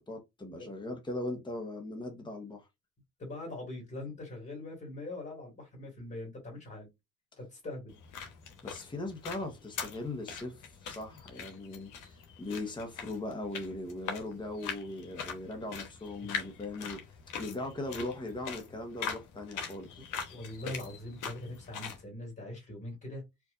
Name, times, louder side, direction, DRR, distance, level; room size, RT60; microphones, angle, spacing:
voice 1, 0.0-2.7 8.6-17.0 17.4-20.0, left 2 dB, 15° left, 1.1 m, -39 dB
voice 2, 3.2-6.9 7.4-7.9 16.5-16.6 20.0-20.1 20.3-23.2, left 1 dB, 35° left, 2.2 m, -42 dB
sound 1, 7.9-22.0, left 6 dB, 80° left, 1.2 m, -42 dB
4.6 x 2.5 x 2.5 m
cardioid pair, 90°, 30 cm